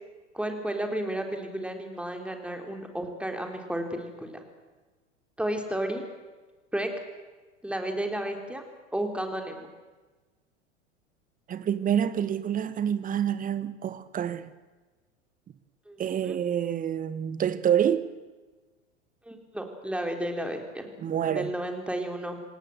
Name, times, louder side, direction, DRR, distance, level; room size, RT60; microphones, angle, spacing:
voice 1, 0.3-4.4 5.4-6.0 6.7-6.9 7.6-8.6 8.9-9.7 15.9-16.4 19.3-20.9 21.3-22.4, right 1 dB, 5° right, 3.6 m, -32 dB
voice 2, 11.5-14.5 16.0-18.0 21.0-21.5, right 9 dB, 20° right, 1.3 m, -27 dB
28.0 x 17.5 x 7.9 m
figure-of-eight pair, 85°, 37 cm